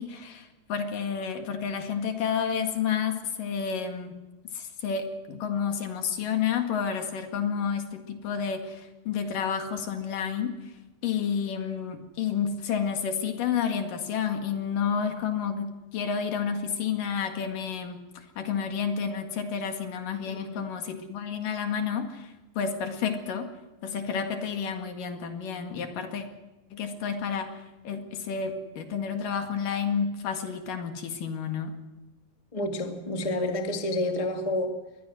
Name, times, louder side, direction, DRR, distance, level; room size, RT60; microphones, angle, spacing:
voice 1, 0.0-4.1 4.5-10.7 11.0-23.5 23.8-26.3 26.7-31.7, left 7 dB, 65° left, 5 dB, 3.5 m, -30 dB
voice 2, 20.3-20.7 32.5-34.8, left 1 dB, 20° left, 4 dB, 1.0 m, -29 dB
24.5 x 20.5 x 6.3 m, 1.1 s
omnidirectional pair, 4.4 m